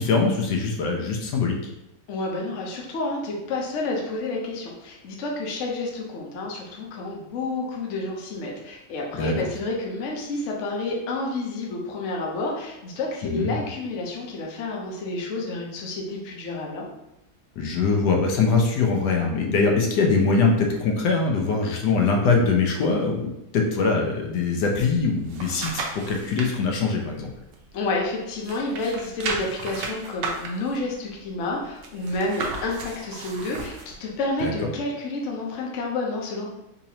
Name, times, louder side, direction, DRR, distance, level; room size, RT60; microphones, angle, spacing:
voice 1, 0.0-1.7 9.1-9.3 13.2-13.6 17.6-27.3 34.4-34.5, left 4 dB, 80° left, 1 dB, 1.2 m, -22 dB
voice 2, 2.1-16.8 27.7-36.5, left 2 dB, 55° left, -1 dB, 0.9 m, -30 dB
sound 1, 24.9-26.5 27.0-28.1 28.4-33.9 34.4-34.5, right 3 dB, 85° right, 1.3 m, -34 dB
4.1 x 2.8 x 2.7 m, 0.89 s
omnidirectional pair, 1.8 m